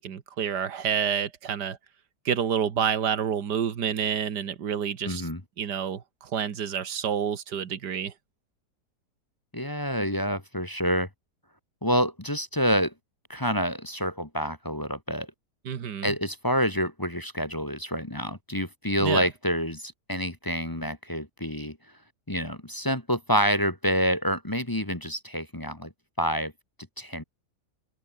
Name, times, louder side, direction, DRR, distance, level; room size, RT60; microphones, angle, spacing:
voice 1, 0.0-1.8 2.3-5.3 5.6-8.1 15.7-16.1 19.0-19.2, right 8 dB, 90° right, 2.1 m, -28 dB
voice 2, 5.0-5.4 9.5-11.1 11.8-12.9 13.3-15.3 16.0-21.8 22.3-25.9 26.2-26.5 27.0-27.2, equal, 15° left, 1.7 m, -27 dB
open air
omnidirectional pair, 1.7 m